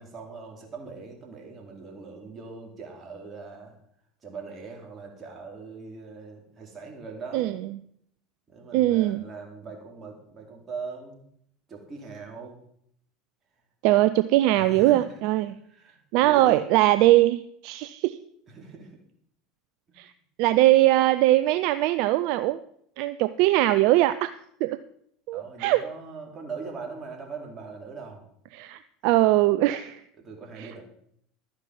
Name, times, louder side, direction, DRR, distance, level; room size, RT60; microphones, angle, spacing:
voice 1, 0.0-3.7 4.2-7.7 8.5-11.3 11.7-12.6 14.5-15.0 15.6-16.6 18.5-19.0 25.3-28.2 29.0-29.2 30.2-30.8, right 4 dB, 30° right, 1 dB, 4.3 m, -41 dB
voice 2, 8.7-9.2 13.8-15.6 16.1-18.2 20.0-20.1 20.4-22.6 23.0-24.3 24.6-24.8 25.3-25.8 28.5-30.0 30.6-30.8, right 16 dB, 60° right, 13 dB, 0.5 m, -21 dB
12.5 x 9.8 x 5.5 m, 0.68 s
hypercardioid pair, 75°, 0 cm